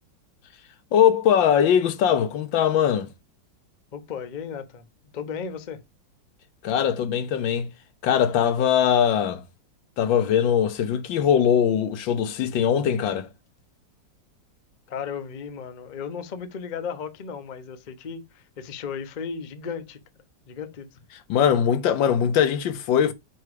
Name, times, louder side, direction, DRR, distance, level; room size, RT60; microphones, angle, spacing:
voice 1, 0.9-3.1 6.6-7.7 8.0-9.4 10.0-13.3 21.3-23.1, left 8 dB, 90° left, 1.5 m, -21 dB
voice 2, 3.9-4.8 5.1-5.8 14.9-20.0 20.5-21.0, left 6 dB, 50° left, 0.5 m, -35 dB
4.7 x 4.6 x 4.8 m
omnidirectional pair, 2.0 m